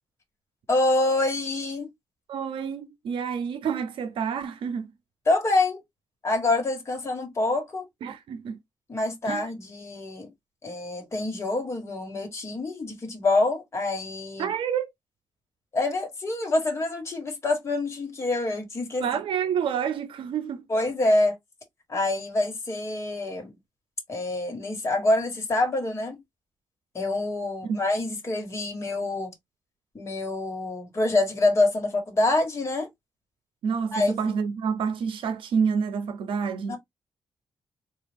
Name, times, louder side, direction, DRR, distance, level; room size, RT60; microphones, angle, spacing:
voice 1, 0.7-1.9 5.3-5.8 6.2-7.8 8.9-10.3 10.6-14.5 15.7-19.0 20.7-21.4 21.9-23.5 24.1-26.2 26.9-29.3 29.9-32.9 33.9-34.3 36.7-36.8, left 2 dB, 35° left, 1.4 m, -26 dB
voice 2, 2.3-4.9 8.0-8.6 9.3-9.4 14.4-14.9 19.0-20.7 27.6-27.8 33.6-36.8, right 7 dB, 85° right, 0.5 m, -28 dB
4.0 x 2.4 x 3.3 m
wide cardioid pair, 150°, 9 cm